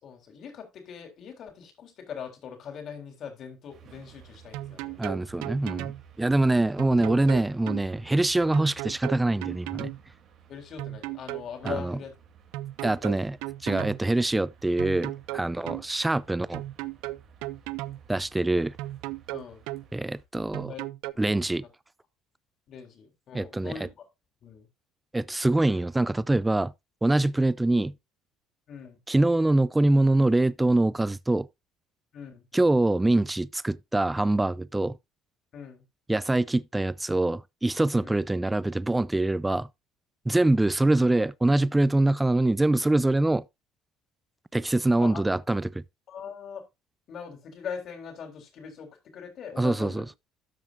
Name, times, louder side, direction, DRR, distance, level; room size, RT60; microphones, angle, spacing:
voice 1, 0.0-5.0 10.5-12.1 19.3-19.6 20.7-20.9 21.1-21.7 22.7-24.0 24.4-24.7 28.7-29.0 32.1-32.4 35.5-35.8 38.0-38.1 40.3-40.5 45.0-45.2 46.1-46.6 47.1-50.1, left 7 dB, 50° left, 3.6 m, -41 dB
sound 1, 3.7-20.2, right 7 dB, 55° right, 2.8 m, -54 dB
sound 2, 4.5-6.0 6.8-7.8 8.5-10.0 10.8-11.9 12.5-14.0 14.8-15.8 16.5-18.0 18.8-19.9 20.5-21.1, right 18 dB, 90° right, 0.4 m, -35 dB
voice 2, 5.0-5.9 6.2-9.9 11.6-12.0 12.8-13.4 13.6-16.6 18.1-18.8 19.9-20.7 21.2-21.6 23.3-23.7 25.1-26.7 27.0-27.9 29.1-31.5 32.5-35.0 36.1-39.7 40.3-43.4 44.5-45.8 49.6-50.1, right 2 dB, 10° right, 0.4 m, -24 dB
13.0 x 7.4 x 2.5 m
cardioid pair, 120°, 0 cm